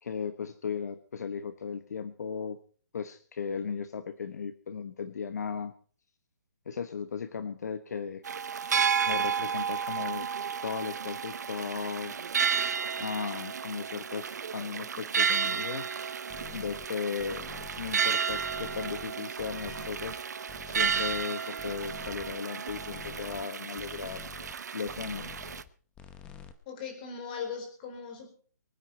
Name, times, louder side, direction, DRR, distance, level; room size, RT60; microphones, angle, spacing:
voice 1, 0.0-2.6 2.9-5.7 6.7-8.2 9.1-12.2 13.0-15.9 16.5-17.5 17.8-20.2 20.7-24.2 24.7-25.4, left 6 dB, 65° left, 10 dB, 1.2 m, -36 dB
sound 1, 8.2-25.6, right 6 dB, 70° right, 0.9 m, -32 dB
sound 2, 16.3-16.9 17.2-18.0 18.3-19.1 19.4-20.2 20.5-21.3 21.6-22.4 22.7-23.4 23.8-24.6 24.8-25.7 25.9-26.5, left 8 dB, 10° left, 0.9 m, -48 dB
voice 2, 26.7-28.3, left 6 dB, 25° left, 5 dB, 4.3 m, -39 dB
24.0 x 9.6 x 4.3 m, 0.43 s
hypercardioid pair, 165°, 10 cm